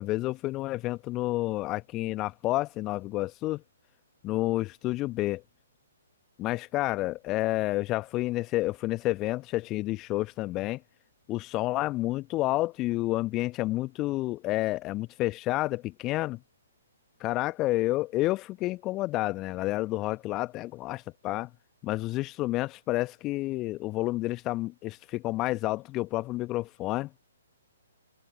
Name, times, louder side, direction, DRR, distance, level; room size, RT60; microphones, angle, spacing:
voice 1, 0.0-3.6 4.2-5.4 6.4-10.8 11.3-16.4 17.2-21.5 21.8-27.1, left 18 dB, 25° left, 1.3 m, -30 dB
figure-of-eight pair, 125°, 0 cm